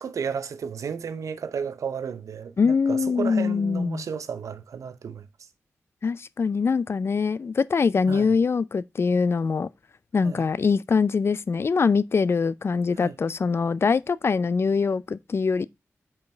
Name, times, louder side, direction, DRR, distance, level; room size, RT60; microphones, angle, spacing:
voice 1, 0.0-5.3 8.1-8.4 10.2-10.4 13.0-13.2, right 6 dB, 85° right, 0.6 m, -33 dB
voice 2, 2.6-4.1 6.0-9.7 10.1-15.7, left 5 dB, 50° left, 0.4 m, -23 dB
5.4 x 4.5 x 4.4 m
wide cardioid pair, 75°, 5 cm